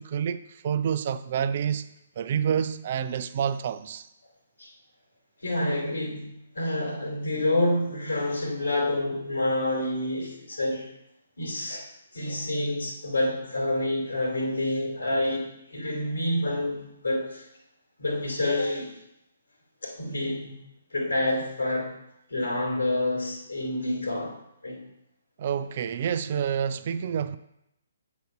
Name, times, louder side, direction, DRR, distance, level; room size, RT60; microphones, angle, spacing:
voice 1, 0.0-1.9 2.2-4.1 25.4-27.4, right 8 dB, 45° right, 0.4 m, -28 dB
voice 2, 5.4-10.9 11.4-11.9 12.1-17.5 18.0-18.9 19.8-20.6 20.9-21.9 22.3-24.4 24.6-24.8, left 1 dB, 75° left, 2.6 m, -28 dB
7.8 x 4.2 x 5.8 m
figure-of-eight pair, 130°, 0 cm